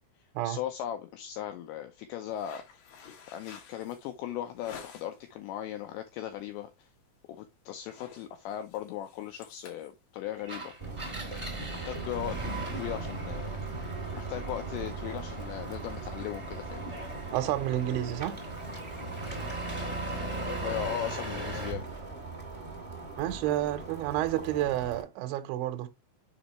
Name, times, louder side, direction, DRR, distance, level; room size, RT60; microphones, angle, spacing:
voice 1, 0.4-2.6 3.3-6.9 7.4-10.7 11.7-13.6 14.1-17.0 20.6-21.9, left 11 dB, 90° left, 2.5 m, -38 dB
sound 1, 2.3-5.3 5.8-6.1 6.5-6.7 7.0-7.4 7.7-11.6, left 7 dB, 65° left, 2.3 m, -51 dB
Engine, 10.4-21.8, right 2 dB, 15° right, 1.1 m, -39 dB
sound 2, 10.8-25.0, right 3 dB, 50° right, 0.4 m, -40 dB
voice 2, 17.3-18.4 23.2-25.9, right 13 dB, 80° right, 2.9 m, -30 dB
7.0 x 5.2 x 3.1 m
omnidirectional pair, 5.9 m